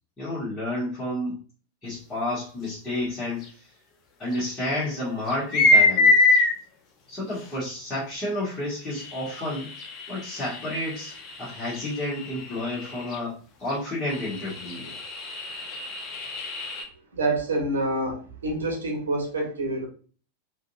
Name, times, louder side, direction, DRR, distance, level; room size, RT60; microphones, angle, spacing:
voice 1, 0.2-1.4 1.8-3.5 4.2-6.1 7.1-9.7 10.1-11.1 11.4-14.9, left 1 dB, 15° left, -10 dB, 1.9 m, -30 dB
sound 1, 3.4-3.5 4.3-4.4 5.3-6.5 7.6-7.7 8.9-13.2 13.7-13.8 14.1-16.8, left 2 dB, 30° left, 0.8 m, -25 dB
voice 2, 17.1-19.9, right 2 dB, 70° right, 1 dB, 1.3 m, -27 dB
4.9 x 2.8 x 2.5 m, 0.38 s
figure-of-eight pair, 90°, 0 cm